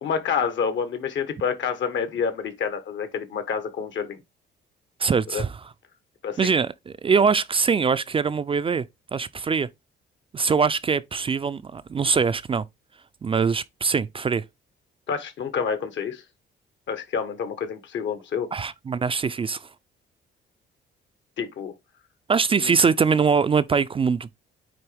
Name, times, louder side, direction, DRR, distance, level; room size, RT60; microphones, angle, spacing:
voice 1, 0.0-4.2 5.3-5.4 6.2-6.5 15.1-16.2 16.9-18.5 21.4-21.7 22.5-22.7, left 6 dB, 70° left, 1.4 m, -28 dB
voice 2, 5.0-5.5 6.4-8.9 9.1-9.7 10.3-12.6 13.2-14.4 18.5-19.7 22.3-24.3, right 5 dB, 30° right, 0.4 m, -22 dB
9.1 x 3.0 x 3.4 m
cardioid pair, 90°, 20 cm